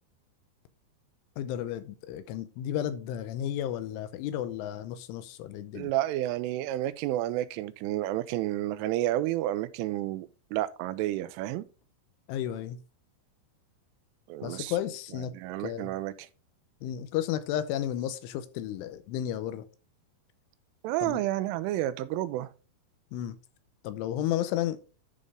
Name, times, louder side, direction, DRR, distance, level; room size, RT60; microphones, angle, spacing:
voice 1, 1.4-5.9 12.3-12.8 14.4-15.3 15.6-15.9 16.8-19.7 21.0-21.2 23.1-23.4 23.8-24.8, left 11 dB, 85° left, 3.2 m, -33 dB
voice 2, 5.7-11.7 14.3-14.7 15.3-16.3 20.8-22.5, right 14 dB, 85° right, 3.1 m, -30 dB
11.0 x 5.3 x 3.6 m
omnidirectional pair, 5.6 m